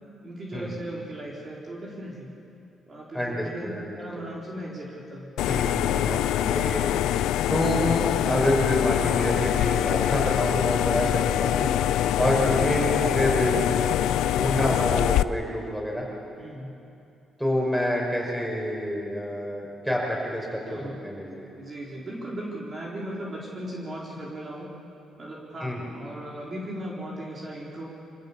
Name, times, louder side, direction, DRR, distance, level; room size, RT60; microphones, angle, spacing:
voice 1, 0.2-2.3 2.9-5.3 16.4-16.8 20.7-21.0 21.6-24.7 25.2-27.9, right 1 dB, 35° right, -4 dB, 4.1 m, -37 dB
voice 2, 3.1-4.3 5.5-7.0 7.5-11.7 12.2-13.7 14.3-16.1 17.4-21.5 25.6-25.8, equal, 5° right, -2 dB, 5.8 m, -27 dB
sound 1, 5.4-15.2, left 12 dB, 90° left, 0.4 m, -24 dB
26.5 x 17.0 x 7.3 m, 2.7 s
cardioid pair, 90°, 0 cm